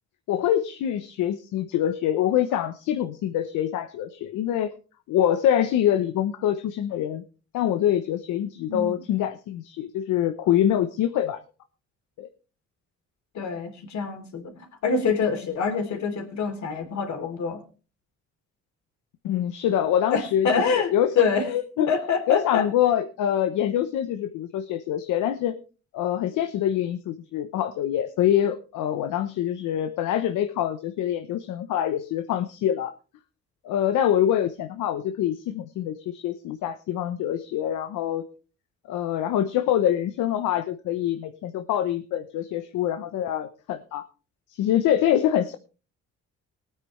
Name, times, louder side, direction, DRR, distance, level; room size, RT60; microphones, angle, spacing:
voice 1, 0.3-4.7 5.1-7.2 7.5-11.4 12.2-12.3 19.2-20.5 20.8-21.1 21.4-21.9 22.3-25.6 25.9-32.9 33.6-38.2 38.9-44.1 44.5-45.6, left 10 dB, 90° left, 9 dB, 1.0 m, -25 dB
voice 2, 8.7-9.0 13.3-17.6 20.1-21.5 21.8-22.7, left 5 dB, 65° left, 4 dB, 3.4 m, -26 dB
19.5 x 9.3 x 3.2 m, 0.35 s
cardioid pair, 90°, 30 cm